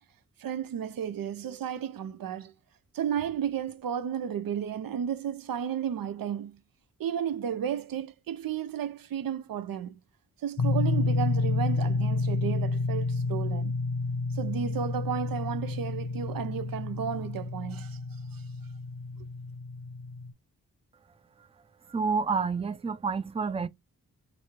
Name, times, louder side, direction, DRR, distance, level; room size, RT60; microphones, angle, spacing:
voice 1, 0.4-2.5 2.9-6.6 7.0-10.0 10.4-13.8 14.3-18.0 18.3-18.4, right 8 dB, 80° right, 0.6 m, -33 dB
sound 1, 10.6-20.3, left 3 dB, 50° left, 0.7 m, -30 dB
voice 2, 21.9-23.7, right 5 dB, 15° right, 0.4 m, -29 dB
3.1 x 2.5 x 4.2 m
cardioid pair, 45°, 34 cm